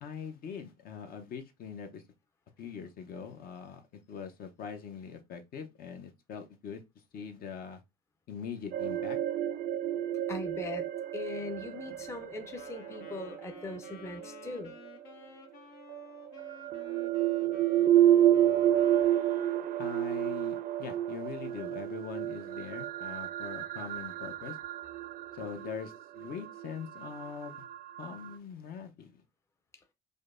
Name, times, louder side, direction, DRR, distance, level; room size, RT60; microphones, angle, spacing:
voice 1, 0.0-2.0 2.6-3.8 4.1-6.8 7.1-7.8 8.3-9.2 19.8-24.6 25.3-27.7 28.0-29.2, left 7 dB, 60° left, 0.7 m, -42 dB
sound 1, 8.7-14.7 15.9-28.3, right 11 dB, 60° right, 0.5 m, -30 dB
voice 2, 10.3-14.7, left 3 dB, 15° left, 0.5 m, -40 dB
Wind instrument woodwind instrument, 12.5-19.7, left 6 dB, 90° left, 0.9 m, -53 dB
5.1 x 2.1 x 2.5 m
cardioid pair, 110°, 17 cm